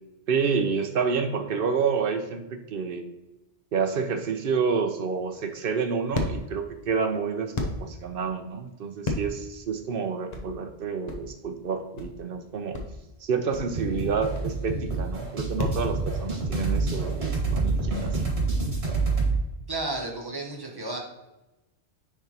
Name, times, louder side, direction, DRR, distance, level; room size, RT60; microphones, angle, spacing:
voice 1, 0.3-3.0 3.7-12.8 13.2-18.2, right 5 dB, 60° right, 7 dB, 0.9 m, -29 dB
sound 1, 5.0-15.8, left 2 dB, 45° left, 0.9 m, -35 dB
sound 2, 13.8-19.4, right 3 dB, 80° right, 2.1 m, -27 dB
voice 2, 19.7-21.0, right 2 dB, 20° right, 0 dB, 1.1 m, -32 dB
9.9 x 3.5 x 2.9 m, 0.99 s
omnidirectional pair, 1.1 m